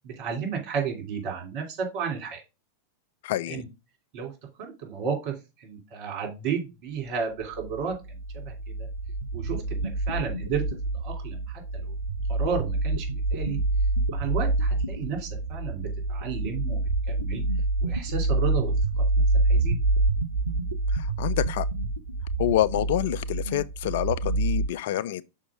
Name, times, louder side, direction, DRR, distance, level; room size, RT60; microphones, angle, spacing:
voice 1, 0.0-2.4 3.5-3.6 4.1-4.3 4.6-8.2 8.4-8.9 9.3-10.6 11.0-11.9 12.3-13.6 14.1-16.8 17.1-17.4 17.8-19.0 19.5-19.8, right 6 dB, 45° right, 2.9 m, -33 dB
voice 2, 3.2-3.6 20.9-21.7 22.4-25.2, left 13 dB, 55° left, 0.3 m, -27 dB
sound 1, 7.6-24.7, right 2 dB, 80° right, 0.5 m, -27 dB
6.1 x 4.5 x 4.8 m
figure-of-eight pair, 90°, 0 cm